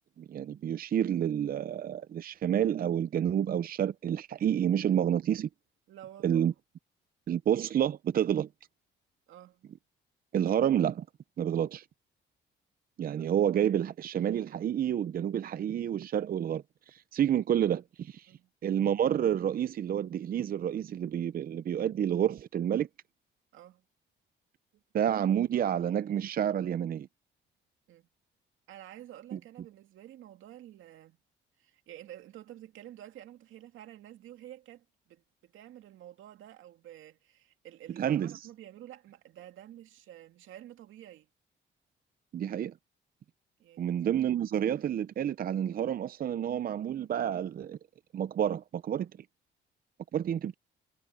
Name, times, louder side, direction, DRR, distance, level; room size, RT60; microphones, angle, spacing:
voice 1, 0.2-5.5 6.2-6.5 7.3-8.5 10.3-11.1 11.4-11.9 13.0-18.3 18.6-22.9 24.9-27.1 29.3-29.4 38.0-38.5 42.3-42.7 43.8-47.8 48.1-49.1 50.1-50.5, right 9 dB, 45° right, 0.5 m, -29 dB
voice 2, 5.9-6.5 9.3-9.6 18.3-18.5 23.5-23.8 24.7-24.8 27.9-28.1 28.7-31.2 31.6-41.3 43.6-43.9, right 12 dB, 80° right, 2.3 m, -50 dB
cardioid pair, 90°, 20 cm